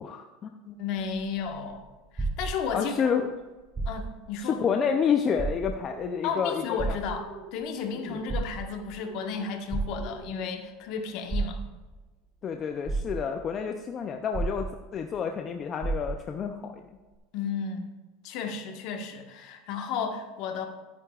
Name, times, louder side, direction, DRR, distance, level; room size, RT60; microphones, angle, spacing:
voice 1, 0.0-0.5 2.7-3.3 4.4-7.0 8.0-8.2 12.4-16.8, left 6 dB, 30° left, 5 dB, 0.5 m, -29 dB
voice 2, 0.6-1.8 2.1-2.9 3.8-4.6 6.2-11.6 17.3-17.9 18.2-20.7, left 6 dB, 55° left, 4 dB, 1.4 m, -33 dB
sound 1, 1.0-3.0 3.6-4.3 4.7-4.8 5.3-6.0 6.8-7.6 8.1-9.0 9.7-10.4 11.3-12.0 12.5-12.6 12.8-13.6 14.3-15.1 15.4-15.5 15.8-16.4 17.1-17.2, right 3 dB, 15° right, 3.0 m, -32 dB
sound 2, 5.8-6.3 7.1-7.6 7.8-8.3 9.0-9.4 10.0-10.5, right 4 dB, 45° right, 1.9 m, -45 dB
13.0 x 9.5 x 2.4 m, 1.2 s
supercardioid pair, 140°, 0 cm